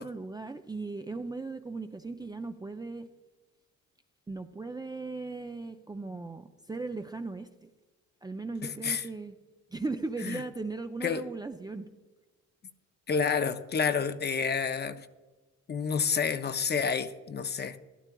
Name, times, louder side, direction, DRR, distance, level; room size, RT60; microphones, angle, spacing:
voice 1, 0.0-3.1 4.3-7.7 8.2-9.4 9.7-11.9, right 3 dB, 15° right, 7 dB, 0.4 m, -37 dB
voice 2, 8.6-9.0 10.2-10.4 11.0-11.2 13.1-15.1 15.7-17.8, left 6 dB, 35° left, 10 dB, 0.6 m, -29 dB
12.5 x 11.5 x 2.3 m, 1.2 s
cardioid pair, 90°, 30 cm